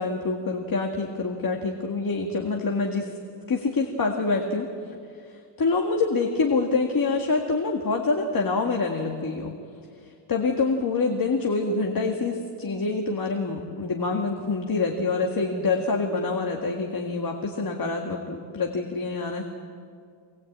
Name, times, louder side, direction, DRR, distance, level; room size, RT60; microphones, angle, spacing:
voice 1, 0.0-3.1 3.5-4.7 5.2-9.5 10.3-19.4, left 3 dB, 45° left, 2 dB, 1.8 m, -26 dB
24.5 x 19.5 x 8.8 m, 2.3 s
wide cardioid pair, 170°, 48 cm